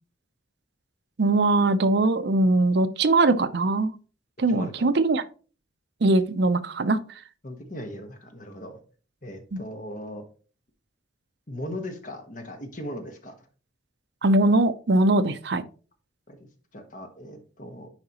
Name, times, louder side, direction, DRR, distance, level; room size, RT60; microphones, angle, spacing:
voice 1, 1.2-3.9 4.4-5.2 6.0-7.0 9.5-9.6 14.2-15.6, right 2 dB, 60° right, 0.6 m, -21 dB
voice 2, 4.5-4.9 7.4-8.8 9.2-10.3 11.5-13.3 16.3-17.9, left 1 dB, 45° left, 1.3 m, -38 dB
10.5 x 4.7 x 2.9 m
head